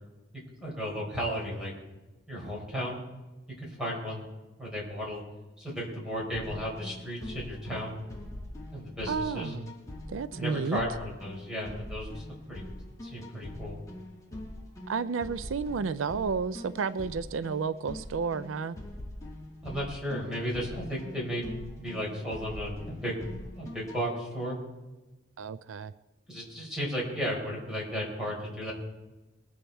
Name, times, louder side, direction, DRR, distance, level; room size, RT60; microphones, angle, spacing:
voice 1, 0.6-1.7 2.3-3.0 3.6-4.3 4.6-5.2 5.6-8.0 8.7-9.5 10.4-12.6 13.0-13.8 19.6-21.5 21.8-23.2 23.5-24.6 26.3-28.7, equal, 5° right, -5 dB, 4.2 m, -34 dB
sound 1, 6.3-24.0, left 1 dB, 15° left, 2.8 m, -43 dB
voice 2, 9.1-9.7 10.1-10.8 14.9-18.8 25.4-25.9, right 5 dB, 85° right, 15 dB, 0.4 m, -31 dB
21.5 x 8.6 x 4.5 m, 1.1 s
head